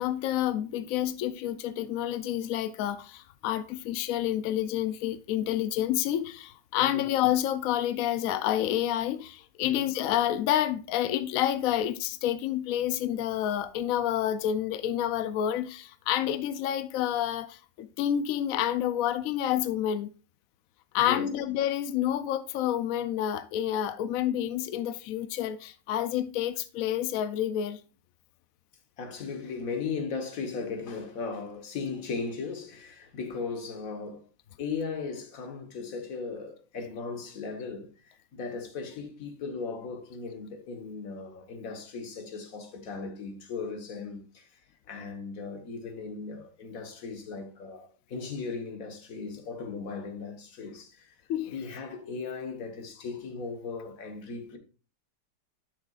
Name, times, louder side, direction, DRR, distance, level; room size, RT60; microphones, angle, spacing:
voice 1, 0.0-20.1 20.9-27.8 51.3-51.6, left 11 dB, 80° left, 0.7 m, -29 dB
voice 2, 21.0-21.3 29.0-34.2 34.6-44.5 44.9-51.1 51.5-54.6, left 4 dB, 50° left, 1.6 m, -37 dB
10.5 x 5.8 x 2.4 m
omnidirectional pair, 2.0 m